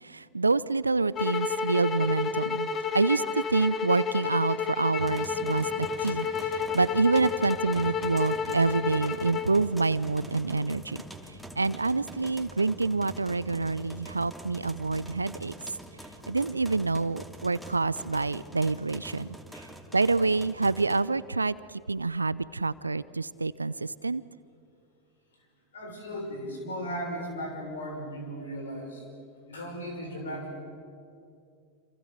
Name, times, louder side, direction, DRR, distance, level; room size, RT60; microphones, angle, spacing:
voice 1, 0.0-11.0 11.6-15.5 16.3-19.3 19.9-21.6 21.9-24.2, right 3 dB, 85° right, 19 dB, 0.5 m, -27 dB
sound 1, 1.2-9.5, left 5 dB, 30° left, 1.7 m, -31 dB
sound 2, 5.0-21.0, right 1 dB, ahead, 2.5 m, -45 dB
voice 2, 25.7-29.0 29.5-30.6, equal, 75° left, 2 dB, 6.3 m, -36 dB
27.5 x 27.5 x 6.6 m, 2.5 s
figure-of-eight pair, 85°, 0 cm